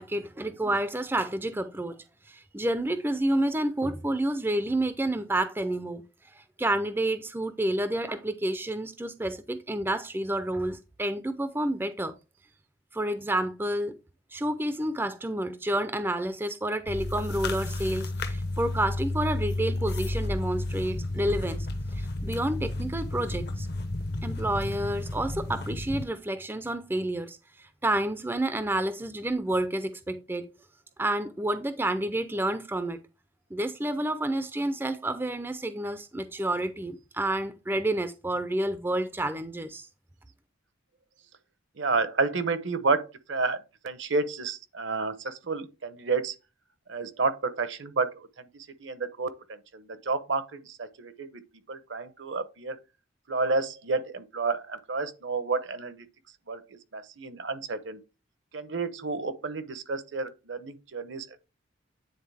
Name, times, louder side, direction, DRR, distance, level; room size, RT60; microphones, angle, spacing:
voice 1, 0.0-2.0 2.3-6.0 6.3-12.2 12.9-14.0 14.3-23.7 24.2-30.5 31.0-33.0 33.5-39.9, right 1 dB, 10° right, 0.4 m, -29 dB
sound 1, 16.9-26.0, left 2 dB, 55° left, 0.8 m, -32 dB
voice 2, 41.8-46.4 46.9-51.4 51.7-52.8 53.3-56.1 56.5-58.0 58.5-61.4, right 3 dB, 65° right, 0.8 m, -30 dB
9.4 x 3.9 x 3.4 m
head